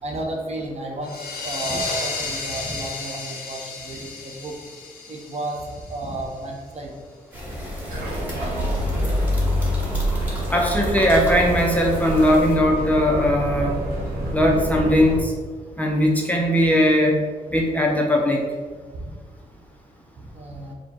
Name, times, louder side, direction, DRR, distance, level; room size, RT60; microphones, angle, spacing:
voice 1, 0.0-4.6 5.1-7.0 8.9-9.0 13.8-14.2 18.9-19.1 20.3-20.7, right 2 dB, 45° right, 0 dB, 0.8 m, -32 dB
sound 1, 1.0-6.4, left 4 dB, 75° left, 0.8 m, -33 dB
sound 2, 7.3-12.6, equal, 10° right, 1.3 m, -33 dB
sound 3, 7.9-15.2, equal, 90° right, 1.5 m, -26 dB
voice 2, 10.5-13.7 14.3-15.3 15.8-17.2 17.5-18.4, equal, 10° left, -1 dB, 0.5 m, -19 dB
4.8 x 2.2 x 4.3 m, 1.5 s
cardioid pair, 115°, 16 cm